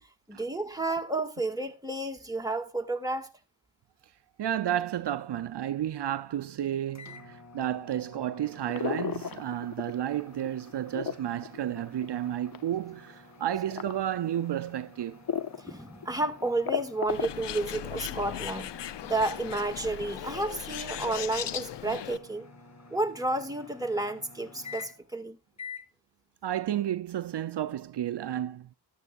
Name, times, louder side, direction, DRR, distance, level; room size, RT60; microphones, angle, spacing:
voice 1, 0.3-3.3 15.6-22.5 22.9-25.4, right 2 dB, 10° right, 1.8 m, -31 dB
voice 2, 4.4-15.2 26.4-28.7, right 11 dB, 75° right, 0.6 m, -32 dB
sound 1, 6.9-25.2 25.6-25.9, left 4 dB, 40° left, 2.4 m, -50 dB
sound 2, 8.7-10.1 10.5-12.7 13.5-14.0 14.5-14.6 15.3-15.7 16.0-16.1 16.4-17.5, left 7 dB, 60° left, 0.8 m, -33 dB
Bird, 17.1-22.2, left 11 dB, 90° left, 0.6 m, -38 dB
13.5 x 11.0 x 2.4 m
cardioid pair, 60°, 41 cm